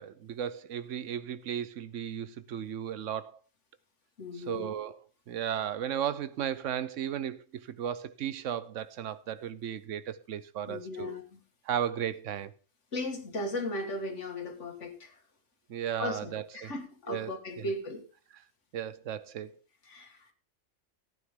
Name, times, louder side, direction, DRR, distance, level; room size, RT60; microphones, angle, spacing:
voice 1, 0.0-3.4 4.4-5.0 5.3-11.2 11.7-12.5 15.7-16.7 17.1-17.3 18.7-19.6, right 9 dB, 80° right, 1.1 m, -35 dB
voice 2, 4.2-4.7 10.7-11.4 12.9-15.2 16.0-18.0 19.8-20.3, left 2 dB, 70° left, 2.2 m, -37 dB
14.5 x 9.5 x 3.7 m
omnidirectional pair, 1.3 m